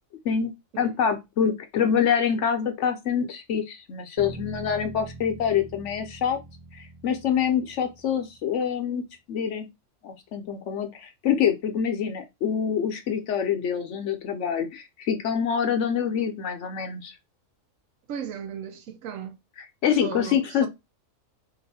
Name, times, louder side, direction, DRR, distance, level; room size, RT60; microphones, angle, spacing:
voice 1, 0.2-6.4 6.7-9.7 10.0-17.1 19.8-20.7, left 7 dB, 65° left, 0.9 m, -26 dB
Bass guitar, 4.2-8.5, right 4 dB, 45° right, 0.9 m, -43 dB
voice 2, 18.1-19.4 20.0-20.7, right 8 dB, 75° right, 1.1 m, -36 dB
2.9 x 2.5 x 4.0 m
omnidirectional pair, 1.4 m